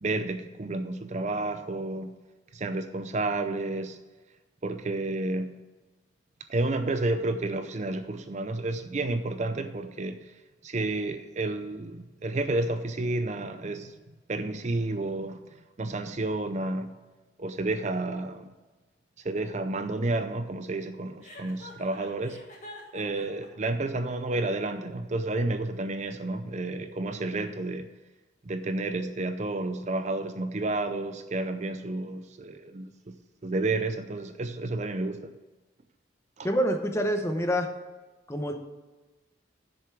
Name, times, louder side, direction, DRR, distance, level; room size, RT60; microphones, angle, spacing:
voice 1, 0.0-2.1 2.5-4.0 4.6-5.5 6.5-10.3 10.6-14.0 14.3-15.4 15.8-16.9 17.4-18.5 19.2-22.4 22.9-27.9 28.4-33.1 33.4-35.3 36.4-36.5, right 2 dB, 35° right, 9 dB, 0.5 m, -31 dB
Chuckle chortle, 21.2-23.5, left 1 dB, 40° left, 1.7 m, -46 dB
voice 2, 36.4-37.7 38.3-38.5, equal, 15° left, 5 dB, 0.9 m, -26 dB
8.0 x 6.8 x 6.0 m, 1.2 s
head